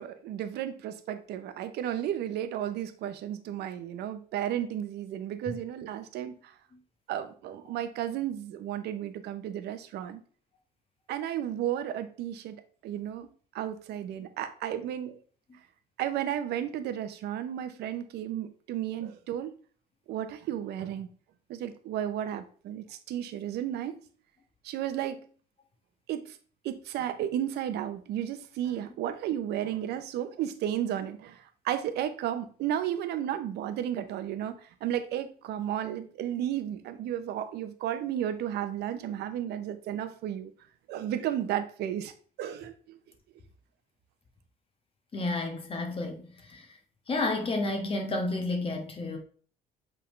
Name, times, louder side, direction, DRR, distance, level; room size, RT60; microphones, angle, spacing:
voice 1, 0.0-6.5 7.1-10.2 11.1-15.2 16.0-19.5 20.1-21.1 21.5-24.0 24.6-25.3 26.1-26.4 26.6-40.5 40.9-42.1 42.4-43.0, right 11 dB, 75° right, 0.8 m, -33 dB
voice 2, 45.1-46.6 47.1-49.2, left 2 dB, 35° left, 1.3 m, -31 dB
7.9 x 3.7 x 3.2 m
cardioid pair, 110°, 17 cm